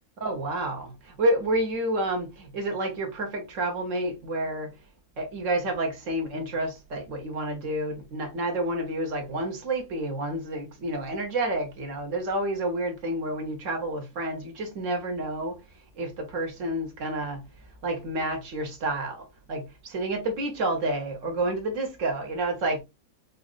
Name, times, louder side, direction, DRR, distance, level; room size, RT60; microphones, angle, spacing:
voice 1, 0.2-4.7 5.2-15.6 16.0-17.4 17.8-22.8, right 1 dB, 50° right, 1.2 m, -29 dB
4.9 x 2.4 x 2.4 m
omnidirectional pair, 2.0 m